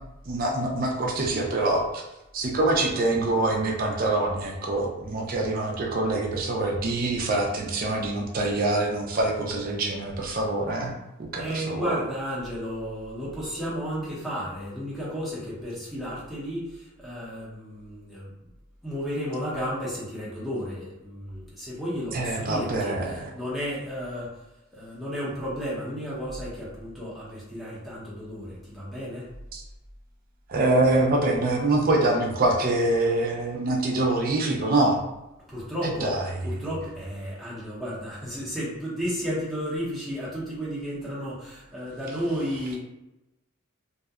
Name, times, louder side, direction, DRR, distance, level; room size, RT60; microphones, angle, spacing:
voice 1, 0.3-2.0 2.3-10.9 11.3-11.8 22.1-23.3 29.5-29.6 30.5-35.0 36.0-36.2, right 2 dB, 40° right, 0 dB, 0.4 m, -25 dB
voice 2, 11.4-18.3 18.8-24.4 24.7-29.3 35.5-36.1 36.4-42.8, equal, ahead, -8 dB, 0.7 m, -33 dB
2.6 x 2.1 x 2.3 m, 0.97 s
head